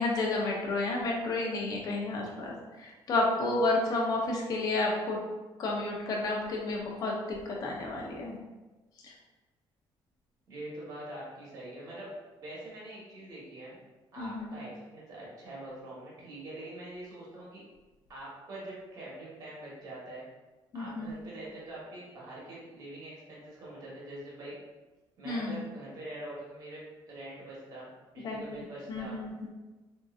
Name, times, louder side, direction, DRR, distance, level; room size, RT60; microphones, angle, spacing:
voice 1, 0.0-5.2 5.6-8.4 9.0-9.1 14.2-14.5 20.7-21.2 25.2-25.6 28.2-28.5 28.9-29.5, left 2 dB, 45° left, -1 dB, 0.6 m, -31 dB
voice 2, 10.5-12.1 12.4-13.8 14.1-17.6 18.1-20.2 20.7-24.6 25.2-29.2, right 1 dB, 40° right, -6 dB, 1.1 m, -44 dB
3.7 x 2.6 x 2.4 m, 1.2 s
cardioid pair, 170°, 9 cm